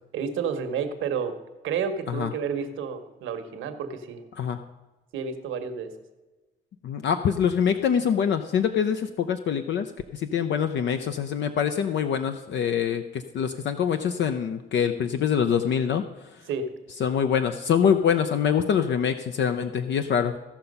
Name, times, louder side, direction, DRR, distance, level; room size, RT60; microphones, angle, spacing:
voice 1, 0.1-1.4 1.6-4.2 5.1-5.9 16.5-16.7, right 6 dB, 85° right, 8 dB, 1.2 m, -30 dB
voice 2, 6.8-16.0 17.0-20.3, left 7 dB, 65° left, 8 dB, 0.6 m, -24 dB
15.5 x 5.8 x 5.4 m, 1.2 s
cardioid pair, 90°, 20 cm